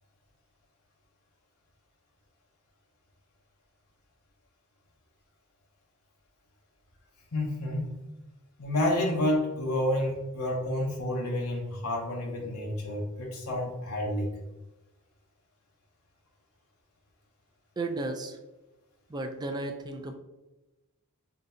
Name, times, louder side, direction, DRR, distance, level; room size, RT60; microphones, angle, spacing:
voice 1, 7.3-8.0 8.6-14.3, left 1 dB, 85° left, -1 dB, 0.8 m, -29 dB
voice 2, 17.8-18.4 19.1-20.1, right 2 dB, 20° right, 4 dB, 0.3 m, -34 dB
3.9 x 3.2 x 2.7 m, 1.0 s
head